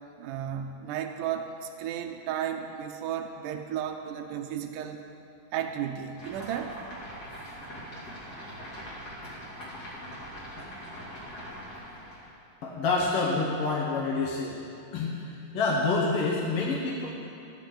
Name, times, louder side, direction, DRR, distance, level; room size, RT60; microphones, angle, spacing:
voice 1, 0.2-5.0 5.5-6.8, right 9 dB, 80° right, 4 dB, 2.0 m, -34 dB
sound 1, 6.2-12.3, equal, 30° left, 2.5 m, -42 dB
voice 2, 12.6-14.6 14.9-17.1, left 3 dB, 70° left, -3 dB, 1.4 m, -27 dB
15.0 x 10.5 x 3.8 m, 2.6 s
omnidirectional pair, 4.1 m